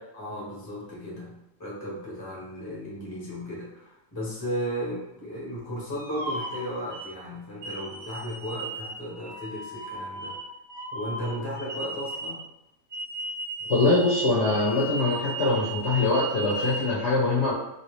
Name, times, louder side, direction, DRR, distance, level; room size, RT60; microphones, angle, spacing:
voice 1, 0.1-10.4 10.9-12.4, equal, 20° left, -4 dB, 0.7 m, -35 dB
sound 1, 5.9-7.1 7.6-12.4 12.9-16.9, right 2 dB, 50° right, 0.6 m, -36 dB
voice 2, 13.7-17.5, left 2 dB, 55° left, -7 dB, 0.8 m, -23 dB
3.1 x 2.6 x 3.1 m, 0.90 s
omnidirectional pair, 1.8 m